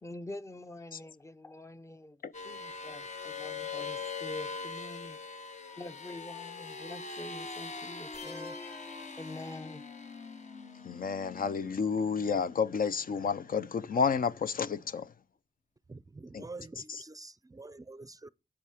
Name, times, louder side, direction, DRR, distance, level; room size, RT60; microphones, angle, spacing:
voice 1, 0.0-2.2 2.4-5.2 5.8-8.6 9.2-9.8, left 1 dB, 20° left, 0.6 m, -46 dB
sound 1, 2.3-13.2, left 4 dB, 50° left, 0.9 m, -42 dB
sound 2, 8.1-10.1, left 3 dB, 90° left, 3.6 m, -49 dB
voice 2, 10.8-15.1 16.3-16.4 16.9-17.0, left 6 dB, 70° left, 0.5 m, -31 dB
voice 3, 15.9-18.3, right 3 dB, 25° right, 0.4 m, -47 dB
9.9 x 7.6 x 4.8 m
wide cardioid pair, 80°, 15 cm